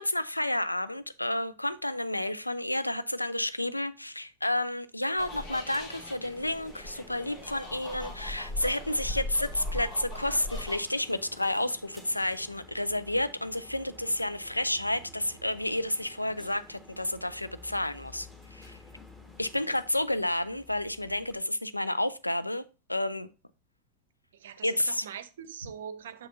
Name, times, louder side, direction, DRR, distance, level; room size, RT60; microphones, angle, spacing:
voice 1, 0.0-18.8 19.4-22.6 22.9-23.3 24.6-25.1, left 1 dB, 85° left, 0.4 m, -31 dB
sound 1, 5.2-10.8, left 1 dB, 40° left, 2.4 m, -39 dB
sound 2, 5.3-21.4, left 1 dB, 10° left, 1.5 m, -52 dB
voice 2, 24.3-26.3, right 8 dB, 60° right, 0.6 m, -42 dB
6.7 x 5.7 x 2.6 m
figure-of-eight pair, 90°, 0 cm